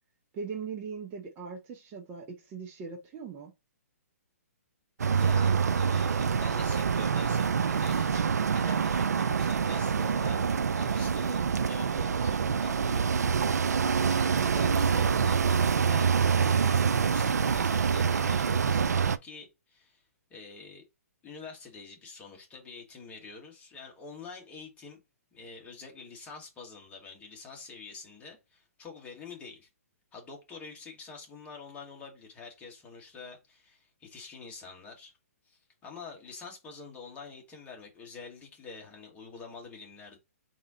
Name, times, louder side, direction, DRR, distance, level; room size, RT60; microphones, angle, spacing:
voice 1, 0.3-3.5, right 5 dB, 25° right, 0.8 m, -40 dB
sound 1, 5.0-19.2, right 6 dB, 85° right, 0.4 m, -26 dB
voice 2, 5.2-10.4 10.7-13.0 13.5-16.1 16.4-18.9 19.2-20.0 20.3-20.8 21.2-25.0 25.3-29.7 30.1-35.1 35.4-40.2, left 4 dB, 15° left, 1.5 m, -47 dB
4.1 x 2.8 x 3.7 m
hypercardioid pair, 140°, 8 cm